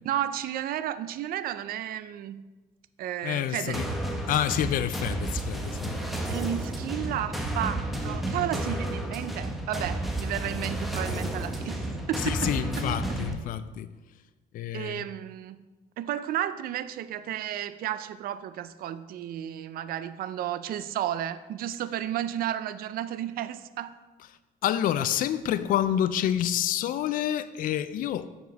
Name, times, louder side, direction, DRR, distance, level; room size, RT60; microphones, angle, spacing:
voice 1, 0.0-2.5 3.0-3.8 6.3-12.5 14.7-15.6 16.0-24.0, right 11 dB, 60° right, 14 dB, 0.4 m, -33 dB
voice 2, 3.2-3.9 4.3-6.1 12.2-13.9 14.5-15.1 24.6-28.3, left 11 dB, 55° left, 13 dB, 0.4 m, -28 dB
sound 1, 3.7-13.3, right 1 dB, ahead, 0.8 m, -31 dB
7.0 x 4.9 x 4.0 m, 1.2 s
cardioid pair, 110°, 17 cm